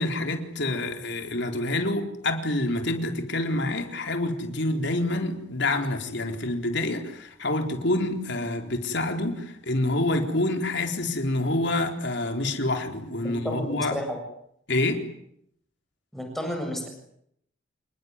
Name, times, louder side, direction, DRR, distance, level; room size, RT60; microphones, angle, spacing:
voice 1, 0.0-14.0 14.7-15.0, left 2 dB, 60° left, 4.1 m, -27 dB
voice 2, 13.2-14.2 16.1-16.9, equal, ahead, 7.4 m, -32 dB
28.5 x 21.0 x 9.7 m
head